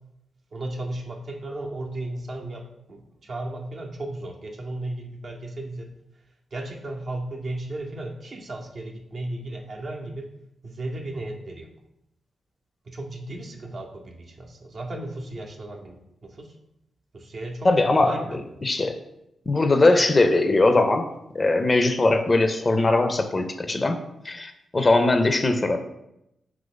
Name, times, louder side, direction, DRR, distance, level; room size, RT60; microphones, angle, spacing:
voice 1, 0.5-5.9 6.5-10.3 10.6-11.7 12.9-16.5 17.1-17.7 18.0-18.4, right 1 dB, 60° right, 1 dB, 0.6 m, -35 dB
voice 2, 17.6-19.0 19.5-21.1 21.3-25.8, left 2 dB, 40° left, 7 dB, 0.4 m, -21 dB
3.0 x 2.5 x 3.7 m, 0.84 s
supercardioid pair, 40°, 0 cm